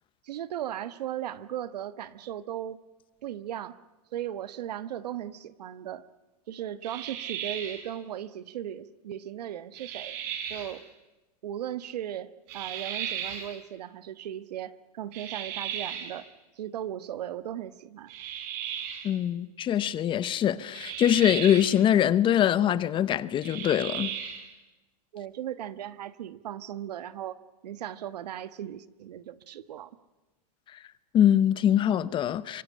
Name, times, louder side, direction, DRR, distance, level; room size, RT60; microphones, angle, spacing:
voice 1, 0.2-2.8 3.2-3.8 4.1-6.1 6.5-10.2 10.5-10.9 11.4-16.3 16.6-18.1 25.1-29.9, right 11 dB, 80° right, 1.3 m, -37 dB
sound 1, 6.8-7.9 9.7-10.7 12.5-13.5 15.1-16.2 18.1-19.1 20.7-21.8 23.4-24.5, right 9 dB, 45° right, 4.4 m, -36 dB
voice 2, 19.0-24.1 31.1-32.6, left 10 dB, 25° left, 0.8 m, -23 dB
24.5 x 21.5 x 10.0 m
supercardioid pair, 140°, 20 cm